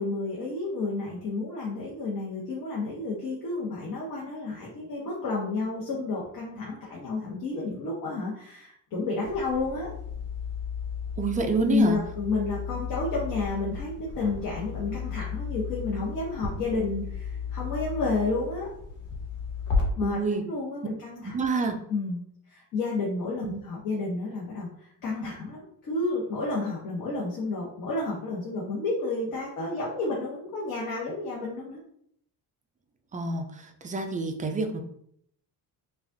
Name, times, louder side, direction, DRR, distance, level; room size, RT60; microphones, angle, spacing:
voice 1, 0.0-9.9 11.6-18.7 20.0-21.3 21.9-22.2 22.5-24.7 25.0-31.8, left 3 dB, 55° left, -4 dB, 1.1 m, -31 dB
sound 1, 9.2-19.8, left 6 dB, 80° left, 1.4 m, -34 dB
voice 2, 11.2-12.0 20.0-20.4 21.2-21.8 23.4-23.6 33.1-33.4 33.8-34.8, right 3 dB, 20° right, 5 dB, 0.3 m, -27 dB
4.9 x 2.4 x 2.6 m, 0.68 s
cardioid pair, 135°, 41 cm